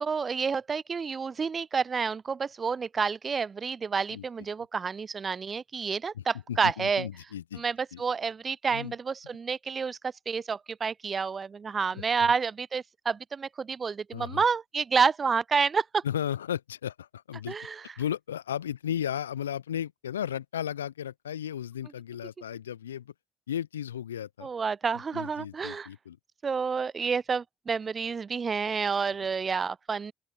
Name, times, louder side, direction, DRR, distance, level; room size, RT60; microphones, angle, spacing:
voice 1, 0.0-7.1 7.6-16.0 17.5-17.8 24.4-25.9 26.4-30.1, right 5 dB, 40° right, 0.4 m, -29 dB
voice 2, 6.1-7.6 7.9-8.0 8.7-8.9 11.9-12.0 14.1-14.4 16.0-17.6 18.0-23.1 23.5-24.5 25.1-26.2 29.2-29.3, left 10 dB, 80° left, 0.6 m, -35 dB
open air
figure-of-eight pair, 45°, 0 cm